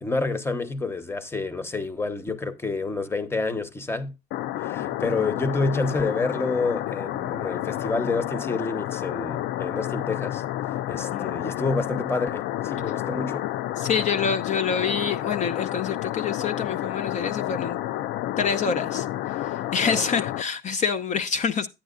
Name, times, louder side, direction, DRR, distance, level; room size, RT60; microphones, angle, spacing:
voice 1, 0.0-4.1 4.6-10.4 10.9-13.5 19.8-20.0, left 3 dB, 15° left, 1.1 m, -28 dB
sound 1, 4.3-20.4, left 14 dB, 85° left, 0.4 m, -30 dB
voice 2, 11.1-11.5 13.8-17.8 18.4-19.1 19.7-21.7, left 6 dB, 45° left, 0.8 m, -26 dB
10.5 x 9.3 x 2.5 m
cardioid pair, 110°, 17 cm